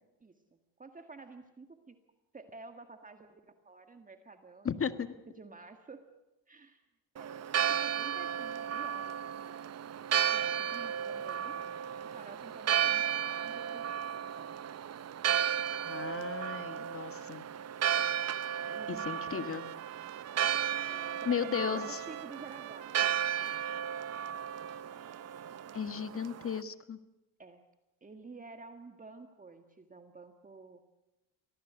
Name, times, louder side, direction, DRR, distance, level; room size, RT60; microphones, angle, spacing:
voice 1, 0.8-2.0 2.3-6.1 6.5-6.8 7.2-9.6 10.3-11.6 12.0-14.5 18.1-18.3 18.7-19.8 20.9-22.9 27.4-27.6 28.0-30.8, right 3 dB, 20° right, 6 dB, 1.8 m, -51 dB
voice 2, 4.7-5.1 15.8-17.4 18.9-19.6 21.3-22.0 25.7-27.0, left 7 dB, 35° left, 11 dB, 1.6 m, -35 dB
Church bell, 7.2-26.6, right 9 dB, 40° right, 0.9 m, -34 dB
Trumpet, 17.8-26.0, right 15 dB, 65° right, 1.1 m, -50 dB
25.0 x 18.0 x 8.1 m, 1.0 s
cardioid pair, 95°, 39 cm